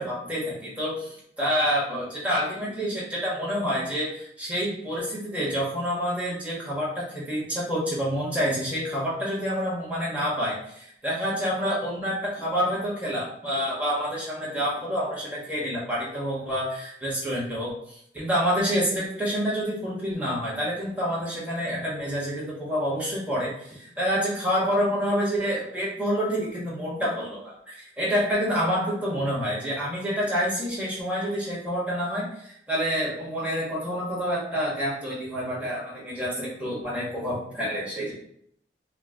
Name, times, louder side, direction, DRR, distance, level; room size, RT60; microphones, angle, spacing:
voice 1, 0.0-38.1, equal, 10° right, -6 dB, 1.3 m, -28 dB
5.6 x 2.2 x 2.8 m, 0.69 s
head